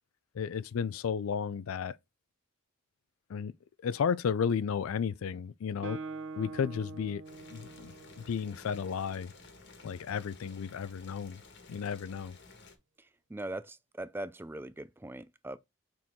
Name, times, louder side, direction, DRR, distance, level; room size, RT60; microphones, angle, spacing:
voice 1, 0.3-2.0 3.3-3.5 3.8-6.0 6.4-7.2 7.5-9.3 9.8-11.4 11.7-12.4, left 7 dB, 85° left, 0.4 m, -33 dB
Guitar, 5.8-9.5, right 4 dB, 60° right, 0.8 m, -44 dB
Boiling, 7.2-12.8, left 3 dB, 55° left, 1.4 m, -54 dB
voice 2, 13.0-15.6, right 1 dB, 10° right, 0.3 m, -41 dB
6.2 x 4.4 x 3.6 m
head